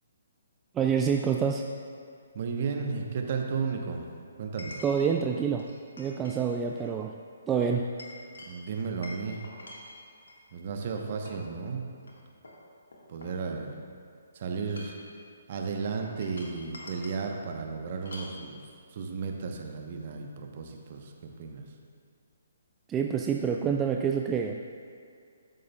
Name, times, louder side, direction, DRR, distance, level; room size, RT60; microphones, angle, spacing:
voice 1, 0.8-1.6 4.8-5.7 6.0-7.2 7.5-7.9 22.9-24.6, right 7 dB, 15° right, 2 dB, 0.3 m, -27 dB
voice 2, 2.3-4.1 4.4-4.8 8.5-9.4 10.5-11.9 13.1-13.8 14.3-15.0 15.5-18.6 18.9-21.6, right 5 dB, 45° right, 2 dB, 0.9 m, -34 dB
Chink clink, 4.6-5.1 5.6-6.4 6.7-6.9 7.6-10.4 11.0-11.5 12.0-12.1 12.4-13.9 14.6-15.1 16.0-17.2 18.0-18.4, left 2 dB, 70° left, 1.5 m, -47 dB
13.0 x 6.4 x 2.3 m, 2.3 s
figure-of-eight pair, 135°, 0 cm